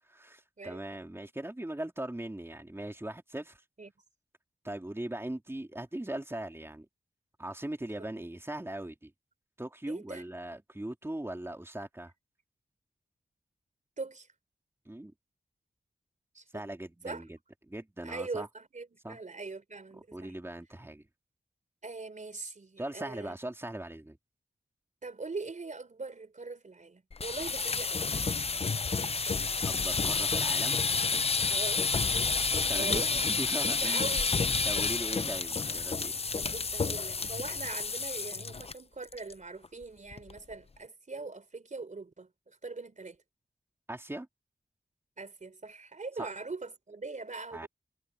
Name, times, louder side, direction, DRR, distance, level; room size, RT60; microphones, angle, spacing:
voice 1, 0.1-3.6 4.6-6.9 7.4-9.1 9.6-12.1 14.9-15.1 16.5-17.4 17.7-18.5 19.0-19.2 20.1-21.0 22.8-24.2 29.6-30.8 32.7-34.1 34.6-36.2 43.9-44.3 46.2-46.3 47.5-47.7, right 1 dB, 15° right, 3.2 m, -39 dB
voice 2, 9.9-10.2 14.0-14.3 16.3-16.6 17.0-17.2 18.0-20.3 21.8-23.4 25.0-28.0 31.5-32.4 32.7-34.3 36.4-43.2 45.2-47.7, right 3 dB, 50° right, 3.6 m, -42 dB
sound 1, 27.1-38.7 39.0-39.3 39.6-39.7 40.1-40.5, left 4 dB, 40° left, 0.6 m, -30 dB
wide cardioid pair, 70°, 16 cm